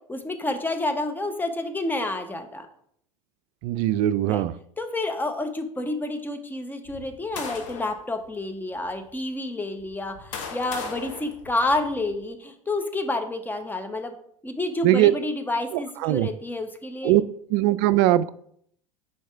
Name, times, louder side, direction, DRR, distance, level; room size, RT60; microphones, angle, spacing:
voice 1, 0.1-2.7 4.3-4.4 4.8-14.1 14.4-17.2, left 2 dB, 10° left, 6 dB, 1.0 m, -29 dB
voice 2, 3.6-4.5 14.8-15.1 16.0-16.3 17.0-17.2 17.5-18.3, right 14 dB, 55° right, 15 dB, 0.4 m, -20 dB
sound 1, 6.9-8.0 8.8-8.9 9.8-12.1, left 5 dB, 65° left, 1.3 m, -38 dB
4.6 x 4.4 x 5.6 m, 0.67 s
hypercardioid pair, 75°, 17 cm